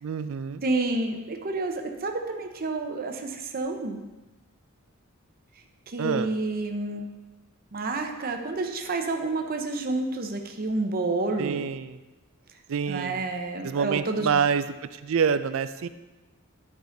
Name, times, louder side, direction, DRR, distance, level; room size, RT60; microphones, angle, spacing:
voice 1, 0.0-0.6 6.0-6.3 11.4-12.0 12.7-13.2 13.6-14.6 15.0-15.9, right 6 dB, 65° right, 12 dB, 0.4 m, -26 dB
voice 2, 0.6-4.0 5.9-7.1 7.7-11.7 12.9-14.3, right 2 dB, 45° right, 4 dB, 0.8 m, -29 dB
10.5 x 4.9 x 3.9 m, 1.1 s
head